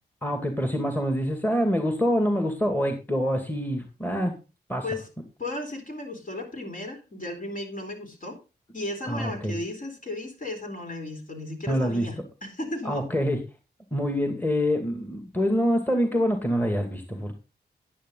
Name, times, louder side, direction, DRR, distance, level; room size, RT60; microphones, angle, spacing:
voice 1, 0.2-4.3 4.7-4.8 9.1-9.5 11.7-12.1 12.8-13.4 13.9-17.3, equal, 10° left, 6 dB, 2.2 m, -25 dB
voice 2, 5.4-8.4 8.7-13.1, left 2 dB, 50° left, 4 dB, 4.1 m, -35 dB
10.0 x 10.0 x 3.9 m, 0.29 s
cardioid pair, 65°, 18 cm